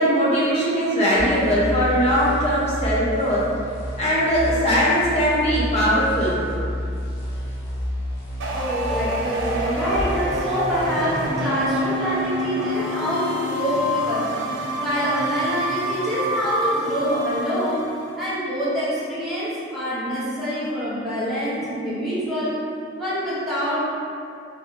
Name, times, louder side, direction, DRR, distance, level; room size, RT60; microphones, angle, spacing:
voice 1, 0.0-3.4 4.0-6.4, equal, 35° left, -7 dB, 0.9 m, -20 dB
sound 1, 1.1-10.1, equal, 85° left, 1.0 m, -30 dB
sound 2, 8.4-18.0, equal, 75° right, 0.6 m, -27 dB
voice 2, 8.5-14.5 14.8-17.9 18.2-22.6 23.0-23.8, equal, ahead, -12 dB, 1.1 m, -25 dB
3.8 x 3.6 x 3.2 m, 2.5 s
head